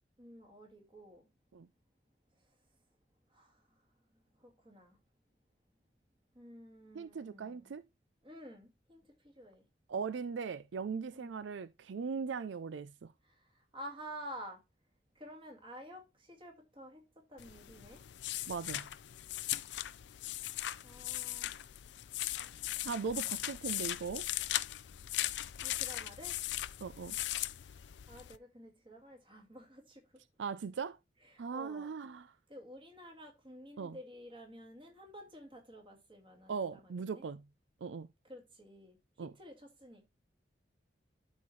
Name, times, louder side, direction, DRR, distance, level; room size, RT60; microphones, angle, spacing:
voice 1, 0.2-1.2 3.3-3.6 4.4-5.0 6.4-7.7 8.2-9.6 11.1-11.4 13.3-13.4 13.7-14.6 15.2-18.0 20.8-21.6 25.6-26.4 28.1-30.1 31.3-31.9 32.5-37.2 38.3-39.0 39.4-40.1, equal, 30° right, 2.1 m, -51 dB
voice 2, 6.9-7.8 9.9-13.1 18.5-18.9 22.8-24.3 26.8-27.2 30.4-31.0 31.4-32.3 33.8-34.0 36.5-37.4 37.8-38.1 39.2-39.3, right 5 dB, 85° right, 0.4 m, -39 dB
sound 1, 17.4-28.4, left 14 dB, 80° left, 0.4 m, -39 dB
12.0 x 4.3 x 3.1 m
head